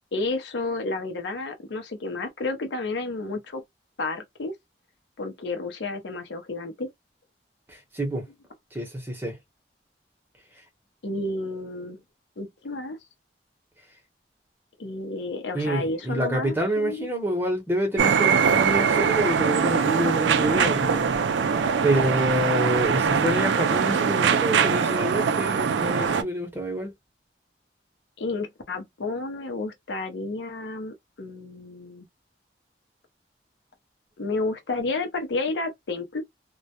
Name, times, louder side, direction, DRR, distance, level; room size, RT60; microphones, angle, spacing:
voice 1, 0.1-3.6 4.0-4.5 5.2-6.9 11.0-12.0 12.4-13.0 14.8-17.1 28.2-32.1 34.2-36.2, left 2 dB, 80° left, 0.6 m, -31 dB
voice 2, 7.7-8.3 8.7-9.4 15.5-21.1 21.8-26.9, equal, 10° right, 0.8 m, -27 dB
sound 1, 18.0-26.2, right 6 dB, 85° right, 0.4 m, -22 dB
2.2 x 2.0 x 2.8 m
head